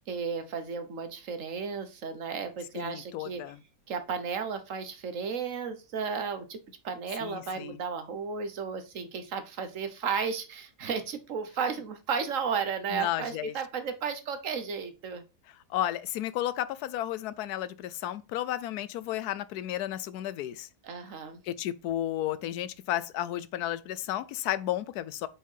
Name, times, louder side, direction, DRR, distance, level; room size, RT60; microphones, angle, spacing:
voice 1, 0.0-3.4 3.9-6.6 6.8-15.2 20.8-21.4, right 6 dB, 55° right, 1.2 m, -34 dB
voice 2, 2.7-3.6 7.2-7.8 12.9-13.5 15.7-20.7 21.5-25.3, left 13 dB, 80° left, 1.1 m, -33 dB
5.4 x 5.1 x 5.5 m
omnidirectional pair, 1.7 m